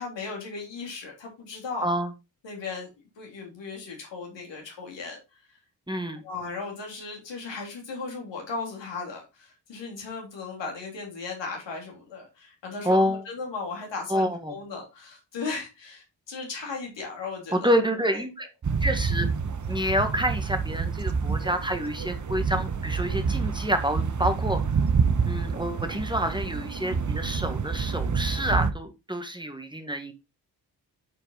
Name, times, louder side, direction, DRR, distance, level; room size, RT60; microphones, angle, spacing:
voice 1, 0.0-1.9 2.4-2.9 3.2-5.2 6.2-17.7 18.1-18.2, left 4 dB, 80° left, 0 dB, 3.3 m, -36 dB
voice 2, 5.9-6.2 12.8-13.2 14.1-14.6 17.5-18.5 18.8-19.3 19.7-24.6 25.2-30.1, equal, 10° right, 7 dB, 1.6 m, -27 dB
sound 1, 18.6-28.7, right 5 dB, 45° right, 1.0 m, -27 dB
8.9 x 4.5 x 3.9 m, 0.25 s
supercardioid pair, 45°, 43 cm